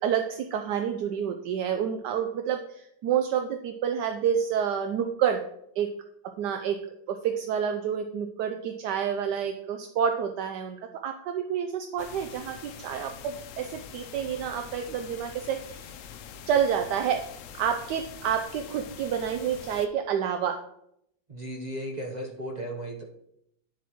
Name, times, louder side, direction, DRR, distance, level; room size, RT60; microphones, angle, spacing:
voice 1, 0.0-5.4 5.8-5.9 6.4-6.8 7.1-15.9 16.5-17.2 17.5-20.6, right 8 dB, 75° right, 6 dB, 1.1 m, -29 dB
sound 1, 12.0-19.9, left 8 dB, 75° left, 0.7 m, -45 dB
voice 2, 21.3-23.0, right 1 dB, 35° right, 0 dB, 0.7 m, -35 dB
9.4 x 7.5 x 3.0 m, 0.74 s
omnidirectional pair, 2.0 m